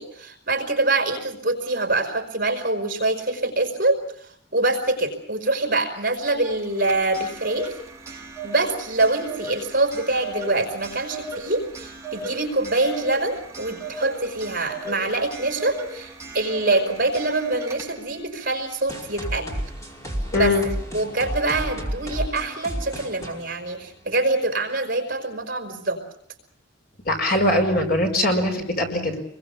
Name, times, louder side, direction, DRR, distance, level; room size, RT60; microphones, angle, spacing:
voice 1, 0.0-4.0 4.5-7.7 8.1-19.5 20.3-26.0, right 2 dB, 50° right, 5 dB, 5.0 m, -25 dB
Clock, 6.6-18.2, right 2 dB, 15° right, 6.3 m, -36 dB
sound 1, 18.9-24.3, right 1 dB, 15° left, 5.1 m, -32 dB
voice 2, 20.3-20.7 27.1-29.2, left 1 dB, 50° left, 4 dB, 5.4 m, -21 dB
28.0 x 22.0 x 7.1 m, 0.67 s
head